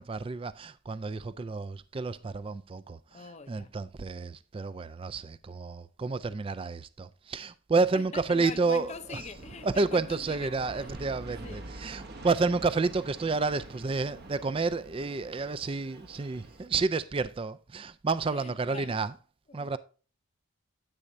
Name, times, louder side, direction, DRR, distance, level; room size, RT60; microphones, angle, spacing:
voice 1, 0.0-9.2 9.6-19.1 19.5-19.8, right 4 dB, 25° right, 0.3 m, -30 dB
voice 2, 3.1-3.7 7.9-11.1 11.4-11.7 18.3-19.0 19.5-19.8, left 4 dB, 30° left, 0.5 m, -44 dB
Aircraft, 8.7-16.7, right 1 dB, 50° right, 0.9 m, -47 dB
9.9 x 8.4 x 2.6 m
head